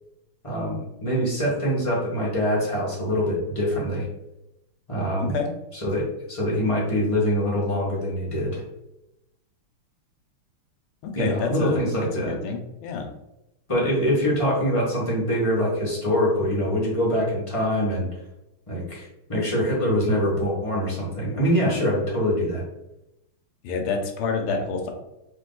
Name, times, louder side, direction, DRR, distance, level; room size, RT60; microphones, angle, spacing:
voice 1, 0.4-4.1 4.9-5.4 5.8-8.6 11.2-12.4 13.7-18.1 18.7-22.6, equal, 20° left, -5 dB, 0.9 m, -24 dB
voice 2, 5.2-5.5 11.0-11.8 12.1-13.1 23.6-24.9, left 5 dB, 75° left, 3 dB, 1.5 m, -28 dB
3.7 x 3.1 x 3.8 m, 0.90 s
omnidirectional pair, 2.4 m